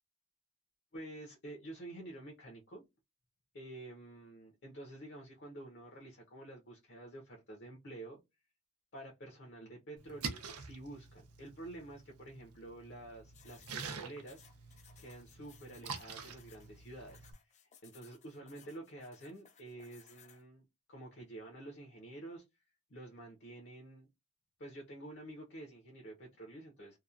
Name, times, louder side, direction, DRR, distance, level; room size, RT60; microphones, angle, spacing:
voice 1, 0.9-2.8 3.5-8.2 8.9-14.4 15.0-17.6 17.8-22.4 22.9-24.1 24.6-27.0, right 1 dB, 50° left, 0.8 m, -49 dB
Splash splatter, 10.0-17.3, right 5 dB, 80° right, 0.6 m, -47 dB
sound 1, 13.3-20.4, left 8 dB, 30° left, 0.4 m, -62 dB
2.9 x 2.3 x 2.4 m
head